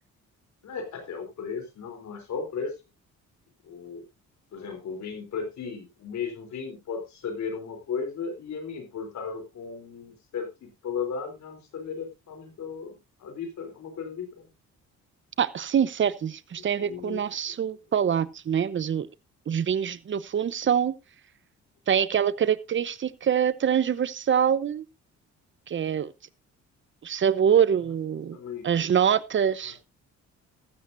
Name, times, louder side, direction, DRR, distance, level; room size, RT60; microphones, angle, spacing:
voice 1, 0.6-2.7 3.6-4.0 4.5-12.9 13.2-14.5 16.6-17.5 28.3-28.7, left 6 dB, 65° left, 3.6 m, -35 dB
voice 2, 15.4-19.1 19.5-20.9 21.9-24.8 25.7-26.1 27.0-28.4 28.6-29.8, right 8 dB, 40° right, 0.8 m, -25 dB
14.5 x 12.5 x 2.6 m
cardioid pair, 90°, 30 cm